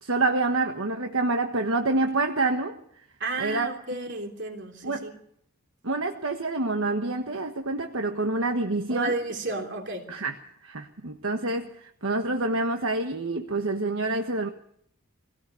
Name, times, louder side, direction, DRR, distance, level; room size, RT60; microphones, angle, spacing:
voice 1, 0.0-2.8 3.4-3.7 4.8-5.1 5.8-9.1 10.1-10.3 10.6-14.5, right 2 dB, 70° right, 5 dB, 1.4 m, -27 dB
voice 2, 3.2-5.1 8.9-10.1, right 2 dB, 55° right, 3 dB, 3.4 m, -32 dB
22.5 x 17.5 x 7.0 m, 0.67 s
head